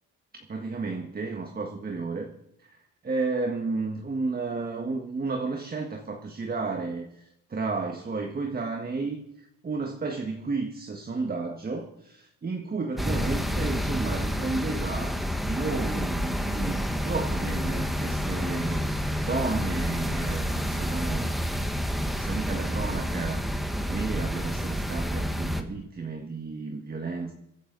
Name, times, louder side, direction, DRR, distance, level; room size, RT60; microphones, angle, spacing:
voice 1, 0.5-2.3 2.6-21.3 22.1-23.4 23.9-27.3, right 3 dB, 30° right, 3 dB, 1.7 m, -32 dB
sound 1, 13.0-25.6, equal, ahead, 1.5 m, -29 dB
25.5 x 10.5 x 4.0 m, 0.82 s
cardioid pair, 90°, 30 cm